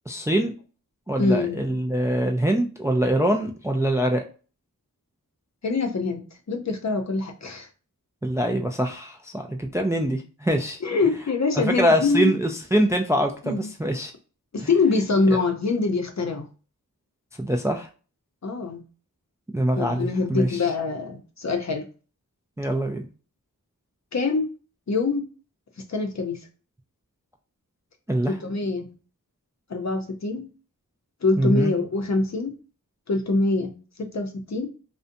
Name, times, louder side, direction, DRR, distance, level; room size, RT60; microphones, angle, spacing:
voice 1, 0.1-0.5 1.1-4.2 8.2-10.8 11.6-14.1 17.4-17.9 19.5-20.5 22.6-23.0 28.1-28.3 31.4-31.7, right 1 dB, 10° right, 3 dB, 0.3 m, -24 dB
voice 2, 1.2-1.6 5.6-6.2 6.5-7.7 10.8-12.3 13.4-13.7 14.5-16.5 18.4-18.8 19.8-21.9 24.1-24.5 24.9-25.2 25.9-26.4 28.2-28.9 29.7-30.4 31.2-32.5 33.1-33.7 34.1-34.7, left 3 dB, 50° left, 3 dB, 0.6 m, -24 dB
2.5 x 2.1 x 2.5 m, 0.36 s
wide cardioid pair, 45°, 35 cm